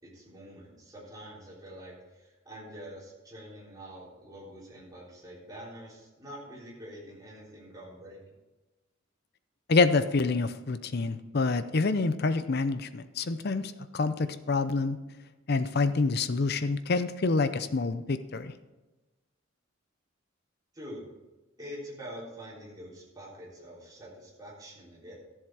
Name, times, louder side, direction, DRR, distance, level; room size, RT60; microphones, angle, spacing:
voice 1, 0.0-8.2 20.7-21.0 21.6-25.1, equal, 20° right, -6 dB, 3.8 m, -45 dB
voice 2, 9.7-15.0 15.5-18.5, left 3 dB, 50° left, 12 dB, 0.6 m, -27 dB
13.5 x 7.4 x 4.7 m, 1.1 s
head